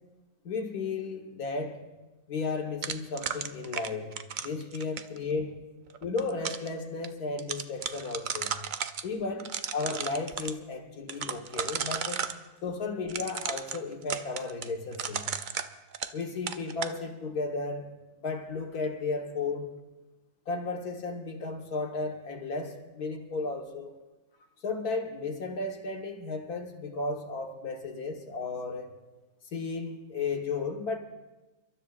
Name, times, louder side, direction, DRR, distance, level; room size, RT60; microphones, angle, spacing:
voice 1, 0.4-1.8 2.3-4.1 4.4-5.5 6.0-8.5 9.0-12.3 12.6-15.2 16.1-17.9 18.2-19.7 20.5-23.9 24.6-28.9 29.5-31.0, left 3 dB, 85° left, 1.9 m, -34 dB
sound 1, 2.8-5.2 5.9-6.7 7.0-7.1 7.4-9.0 9.4-10.5 11.1-12.4 13.1-16.2 16.5-17.0, right 7 dB, 75° right, 0.4 m, -34 dB
29.5 x 13.0 x 2.5 m
omnidirectional pair, 1.6 m